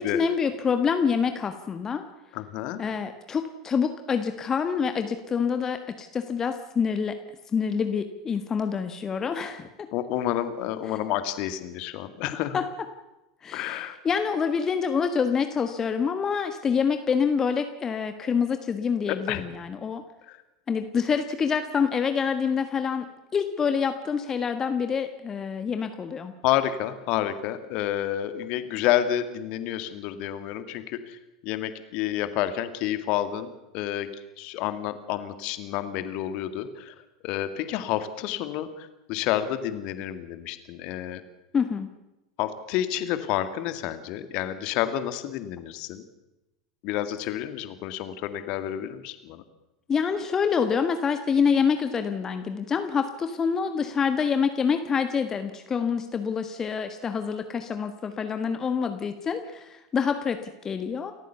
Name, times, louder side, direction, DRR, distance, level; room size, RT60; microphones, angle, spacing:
voice 1, 0.0-2.0 2.8-7.2 7.5-9.7 12.5-12.6 13.4-20.0 20.7-26.3 41.5-41.9 49.9-60.4 60.6-61.1, left 6 dB, 25° left, 8 dB, 1.5 m, -26 dB
voice 2, 2.3-2.8 9.9-12.6 13.5-14.0 19.1-19.5 20.3-20.4 26.4-33.5 33.7-34.1 34.4-36.9 37.2-41.2 42.4-46.0 46.8-49.4, left 12 dB, 45° left, 10 dB, 2.0 m, -29 dB
29.0 x 14.5 x 7.1 m, 0.97 s
figure-of-eight pair, 80°, 2 cm